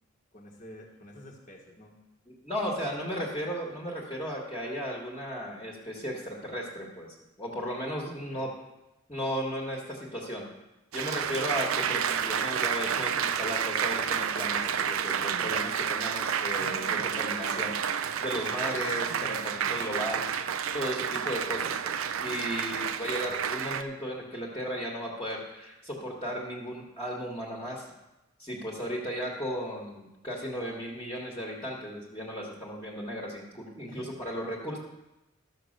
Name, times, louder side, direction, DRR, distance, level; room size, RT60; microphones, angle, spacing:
voice 1, 0.3-2.0 2.7-3.3 8.3-8.4 23.3-23.4 33.9-34.1, equal, 40° left, -2 dB, 1.4 m, -49 dB
voice 2, 2.3-8.5 9.1-10.5 10.9-20.2 20.7-21.9 22.2-27.8 28.4-34.8, equal, 20° left, -3 dB, 1.6 m, -35 dB
Applause, 10.9-23.8, right 8 dB, 90° right, 0.5 m, -30 dB
13.0 x 6.4 x 6.6 m, 0.99 s
head